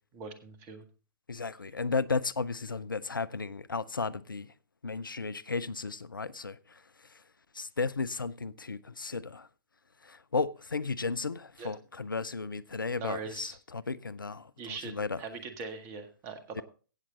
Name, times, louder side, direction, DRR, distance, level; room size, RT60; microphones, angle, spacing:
voice 1, 0.1-0.8 11.6-11.7 12.9-13.6 14.6-16.6, right 5 dB, 25° right, 1.8 m, -41 dB
voice 2, 1.3-4.5 4.8-6.8 7.5-9.5 10.0-15.2 16.6-16.7, left 4 dB, 75° left, 0.6 m, -34 dB
16.0 x 7.3 x 3.9 m
figure-of-eight pair, 125°, 11 cm